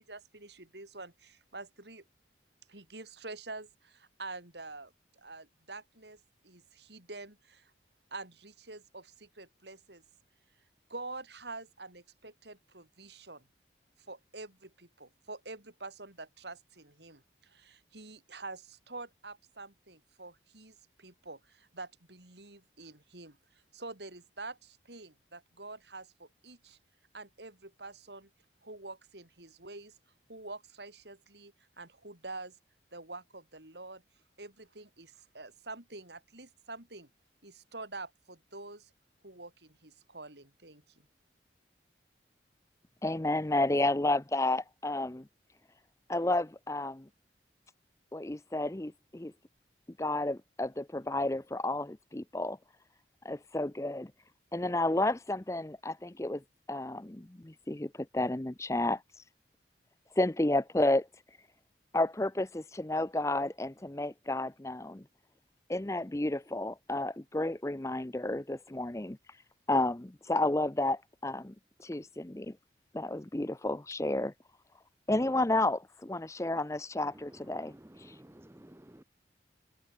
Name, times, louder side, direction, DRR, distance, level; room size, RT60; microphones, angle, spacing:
voice 1, 0.0-2.0 2.7-7.7 8.1-10.0 10.9-13.4 14.1-26.8 27.1-28.3 28.6-29.9 30.3-32.6 32.9-34.0 34.4-37.1 37.4-38.9 39.2-40.8, right 3 dB, 75° right, 6.3 m, -47 dB
voice 2, 43.0-45.2 46.1-47.1 48.1-49.3 50.0-52.6 53.2-54.1 54.5-56.4 56.7-59.0 60.2-61.1 61.9-65.0 65.7-69.2 69.7-71.5 71.8-72.6 72.9-74.3 75.1-77.7 78.0-78.1, left 2 dB, 15° left, 0.6 m, -31 dB
voice 3, 77.0-79.0, right 1 dB, 15° right, 0.8 m, -53 dB
head